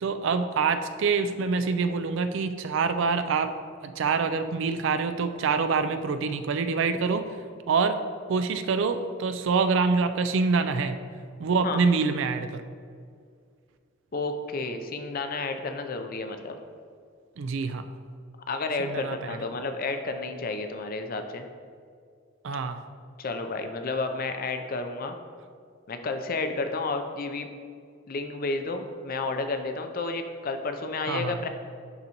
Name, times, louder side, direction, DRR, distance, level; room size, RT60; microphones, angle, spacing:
voice 1, 0.0-3.5 3.8-7.2 7.7-8.0 8.3-11.0 11.4-12.6 17.4-17.9 18.8-19.4 22.4-22.8 31.1-31.3, right 4 dB, 60° right, 9 dB, 0.4 m, -26 dB
voice 2, 14.1-16.6 18.5-21.5 23.2-25.2 25.9-27.5 28.1-31.5, left 3 dB, 45° left, 7 dB, 0.5 m, -31 dB
11.0 x 4.0 x 2.9 m, 2.2 s
head